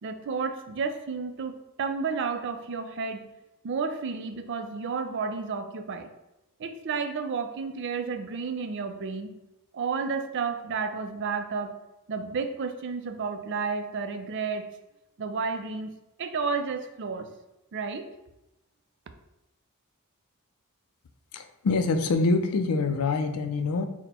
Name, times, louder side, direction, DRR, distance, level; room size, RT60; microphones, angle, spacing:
voice 1, 0.0-3.2 3.6-6.1 6.6-9.3 9.7-11.7 12.1-14.7 15.2-15.9 16.2-17.3 17.7-18.1, right 5 dB, 55° right, 7 dB, 0.4 m, -31 dB
voice 2, 21.3-23.8, left 3 dB, 75° left, 7 dB, 0.4 m, -25 dB
4.2 x 2.2 x 4.1 m, 0.94 s
head